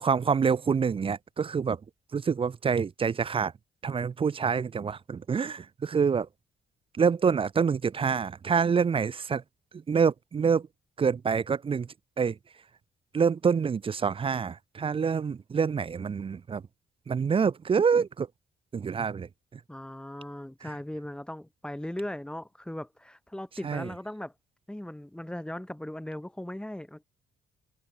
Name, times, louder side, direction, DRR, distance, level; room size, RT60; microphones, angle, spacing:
voice 1, 0.0-1.8 2.1-3.5 3.8-6.3 6.9-9.4 9.7-10.7 11.0-11.9 12.2-12.4 13.1-16.6 17.1-18.3 18.7-19.3 23.6-23.9, right 6 dB, 25° right, 0.4 m, -26 dB
voice 2, 19.7-24.3 24.7-27.0, left 1 dB, 5° left, 1.5 m, -38 dB
cardioid pair, 90°, 20 cm